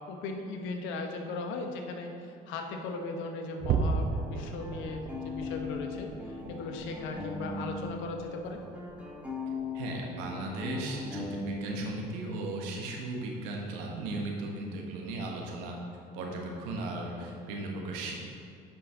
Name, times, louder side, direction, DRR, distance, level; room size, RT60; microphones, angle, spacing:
voice 1, 0.1-8.6, left 3 dB, 65° left, 4 dB, 1.0 m, -38 dB
sound 1, 3.6-10.3 10.6-10.9 11.3-11.5 12.0-12.2, right 4 dB, 50° right, 0.7 m, -36 dB
sound 2, 4.1-8.0 8.3-12.1, left 3 dB, 5° right, 1.7 m, -39 dB
voice 2, 9.7-15.8 16.1-18.1, right 2 dB, 75° right, 0 dB, 1.3 m, -36 dB
8.9 x 5.3 x 3.6 m, 2.5 s
hypercardioid pair, 60°, 21 cm